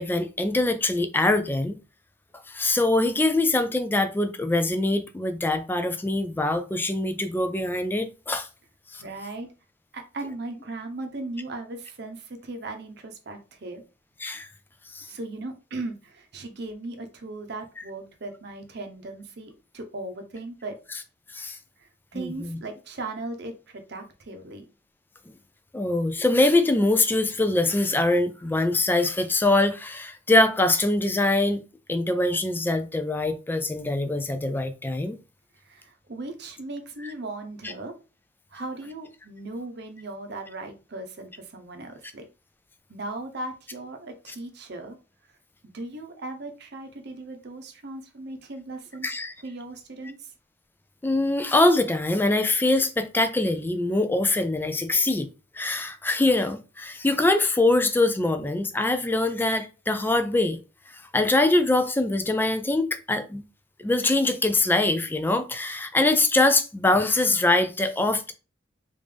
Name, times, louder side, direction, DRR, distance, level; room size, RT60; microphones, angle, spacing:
voice 1, 0.0-1.8 2.5-8.5 8.9-9.0 14.2-14.5 14.9-15.1 21.3-21.6 22.1-22.6 25.3-25.4 25.7-31.6 31.9-35.2 37.6-37.7 49.0-49.3 51.0-55.3 55.5-60.6 60.9-63.4 63.8-68.3, left 2 dB, 10° left, 0.3 m, -23 dB
voice 2, 9.0-9.5 9.9-13.8 15.0-20.8 21.8-24.7 35.6-37.9 38.5-42.3 42.9-45.0 45.7-49.1 49.4-50.3, right 2 dB, 60° right, 0.7 m, -37 dB
3.4 x 2.5 x 3.3 m
head